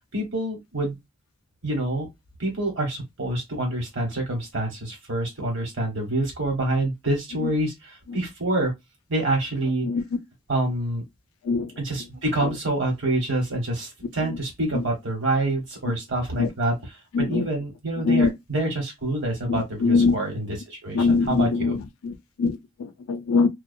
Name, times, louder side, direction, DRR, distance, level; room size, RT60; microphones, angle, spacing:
voice 1, 0.1-0.9 1.6-2.1 2.4-8.7 9.1-9.9 10.5-11.0 11.8-21.8, right 1 dB, 60° right, 1.1 m, -27 dB
voice 2, 17.1-17.5 18.0-18.3 19.5-20.1 20.9-23.5, left 4 dB, 80° left, 0.4 m, -22 dB
2.2 x 2.2 x 2.5 m
head